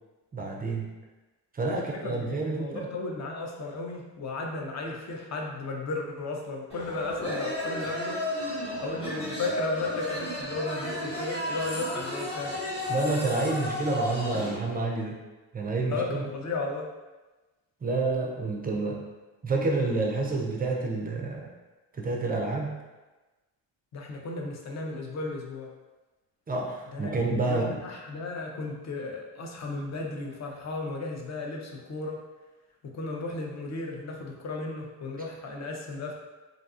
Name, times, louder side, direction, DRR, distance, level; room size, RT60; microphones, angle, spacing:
voice 1, 0.3-0.9 1.5-2.9 12.9-15.2 15.5-16.3 17.8-19.0 19.4-21.5 22.0-22.8 26.5-27.8, right 3 dB, 20° right, -1 dB, 0.3 m, -29 dB
voice 2, 1.8-8.2 8.8-12.6 15.9-16.9 23.9-25.7 26.9-32.2 32.8-36.1, left 3 dB, 35° left, 0 dB, 0.5 m, -35 dB
sound 1, 6.7-14.6, left 1 dB, 10° left, 1.0 m, -33 dB
2.4 x 2.3 x 2.4 m, 1.2 s
cardioid pair, 70°, 46 cm